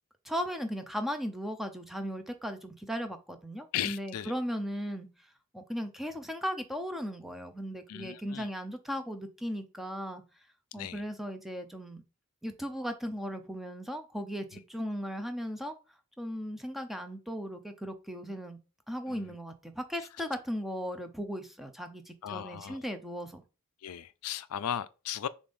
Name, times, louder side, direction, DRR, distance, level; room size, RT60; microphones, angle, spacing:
voice 1, 0.2-5.1 5.5-10.2 10.7-12.0 12.4-15.8 16.2-18.6 18.9-23.4, equal, ahead, 0.6 m, -37 dB
voice 2, 3.7-4.3 7.9-8.5 10.8-11.0 19.1-19.4 22.2-22.8 23.8-25.3, left 10 dB, 85° left, 0.4 m, -36 dB
7.0 x 2.6 x 5.4 m
head